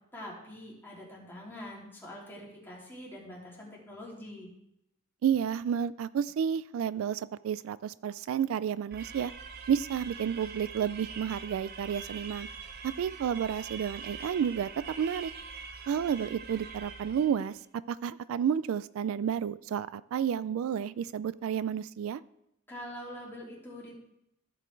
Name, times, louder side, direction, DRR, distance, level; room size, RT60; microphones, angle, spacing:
voice 1, 0.1-4.5 22.7-23.9, left 1 dB, 10° left, -5 dB, 3.0 m, -44 dB
voice 2, 5.2-9.3 9.7-12.5 12.8-15.3 15.9-22.2, right 8 dB, 75° right, 18 dB, 0.3 m, -31 dB
sound 1, 8.9-17.5, right 5 dB, 50° right, 0.7 m, -44 dB
15.0 x 5.1 x 4.5 m, 0.82 s
head